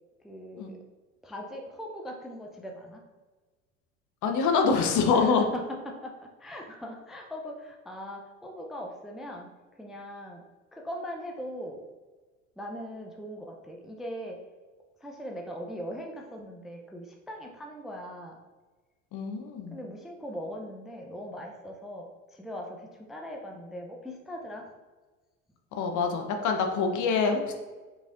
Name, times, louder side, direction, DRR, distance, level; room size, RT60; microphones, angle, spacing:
voice 1, 0.2-0.8 1.2-3.0 5.1-6.1 6.4-10.4 10.7-11.8 12.6-14.4 15.0-18.4 19.7-24.7, equal, ahead, 1 dB, 0.5 m, -40 dB
voice 2, 4.2-5.4 19.1-19.8 25.7-27.5, left 5 dB, 45° left, 4 dB, 0.8 m, -25 dB
5.0 x 3.2 x 2.5 m, 1.3 s
hypercardioid pair, 70°, 40 cm